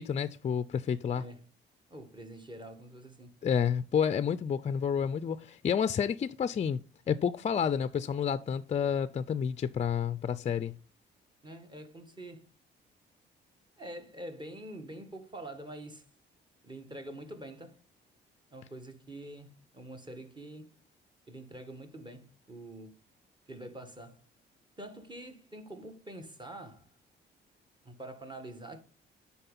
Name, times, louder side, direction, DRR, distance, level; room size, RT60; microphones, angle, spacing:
voice 1, 0.0-1.2 3.4-6.8 7.1-10.7, left 7 dB, 35° left, 0.4 m, -30 dB
voice 2, 1.1-1.4 1.9-3.3 11.4-12.4 13.8-16.0 16.6-17.8 18.5-20.8 21.3-22.9 23.5-24.2 24.8-26.9 27.8-28.8, right 1 dB, 20° right, 1.6 m, -45 dB
9.8 x 4.2 x 5.4 m
cardioid pair, 90°, 20 cm